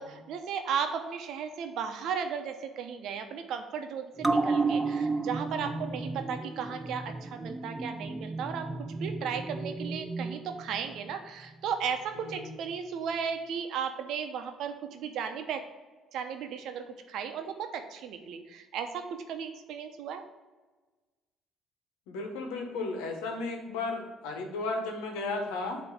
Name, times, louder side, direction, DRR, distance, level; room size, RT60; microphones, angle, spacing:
voice 1, 0.0-8.7 9.0-15.6 16.1-20.2, right 7 dB, 70° right, 6 dB, 0.8 m, -35 dB
sound 1, 4.2-11.1 11.5-11.6, right 3 dB, 15° right, 0.4 m, -32 dB
voice 2, 5.5-5.9 12.2-12.6 22.1-25.8, left 3 dB, 85° left, 3 dB, 1.2 m, -35 dB
8.0 x 3.0 x 6.0 m, 1.3 s
supercardioid pair, 65°, 0 cm